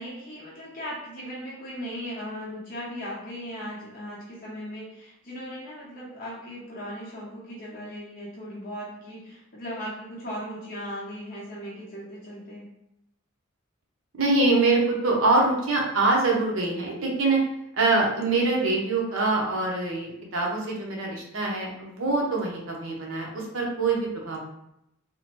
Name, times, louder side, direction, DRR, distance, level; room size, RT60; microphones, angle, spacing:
voice 1, 0.0-12.7, equal, 45° left, -7 dB, 0.7 m, -37 dB
voice 2, 14.1-17.4 17.8-24.4, right 3 dB, 70° right, -1 dB, 0.7 m, -24 dB
2.8 x 2.1 x 3.0 m, 0.82 s
head